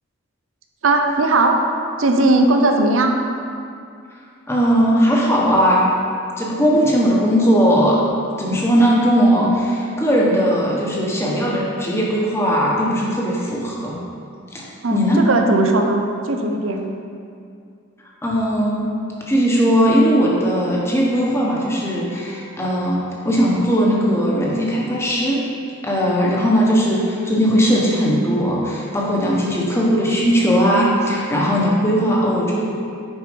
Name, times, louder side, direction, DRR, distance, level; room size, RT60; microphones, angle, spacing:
voice 1, 0.8-1.6 2.0-3.2 14.8-16.8, right 2 dB, 90° right, 4 dB, 0.7 m, -17 dB
voice 2, 4.5-5.9 6.4-8.0 8.4-14.0 14.5-14.6 14.9-15.2 18.2-18.9 19.3-23.0 23.2-25.4 25.8-32.6, equal, 15° left, -4 dB, 1.0 m, -18 dB
6.3 x 4.8 x 5.2 m, 2.4 s
head